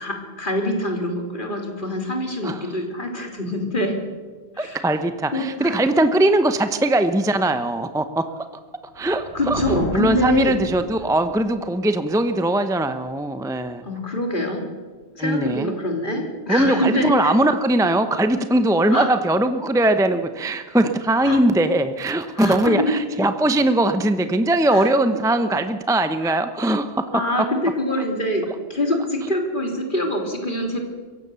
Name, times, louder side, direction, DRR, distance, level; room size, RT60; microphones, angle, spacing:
voice 1, 0.0-4.0 4.6-4.8 5.3-5.8 9.3-10.6 13.9-14.6 15.2-17.3 18.9-19.1 21.2-21.4 22.3-23.0 24.7-24.9 26.2-26.4 27.1-30.8, left 1 dB, 50° left, 3 dB, 3.4 m, -25 dB
voice 2, 4.6-8.3 9.0-9.6 9.9-13.8 15.2-15.7 16.5-27.1, right 1 dB, 5° right, 9 dB, 0.8 m, -20 dB
Thunder, 8.9-11.6, left 1 dB, 85° left, 6.3 m, -32 dB
22.5 x 16.5 x 6.9 m, 1.4 s
omnidirectional pair, 1.1 m